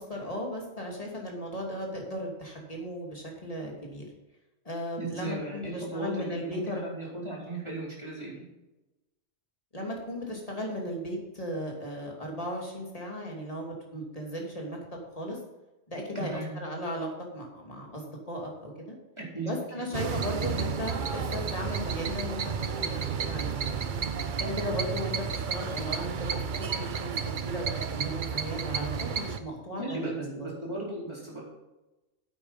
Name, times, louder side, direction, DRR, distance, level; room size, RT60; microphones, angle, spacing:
voice 1, 0.0-4.1 4.6-6.8 9.7-14.8 15.1-15.4 15.9-17.1 17.3-19.0 19.4-24.0 24.4-27.1 27.4-27.7 27.9-28.9 29.2-30.5, equal, 30° left, -1 dB, 2.9 m, -36 dB
voice 2, 5.0-8.4 16.1-16.6 19.2-19.8 29.8-31.4, right 2 dB, 25° right, -4 dB, 4.3 m, -37 dB
sound 1, 19.9-29.4, right 6 dB, 45° right, 0.8 m, -32 dB
9.7 x 8.6 x 5.3 m, 1.0 s
omnidirectional pair, 1.2 m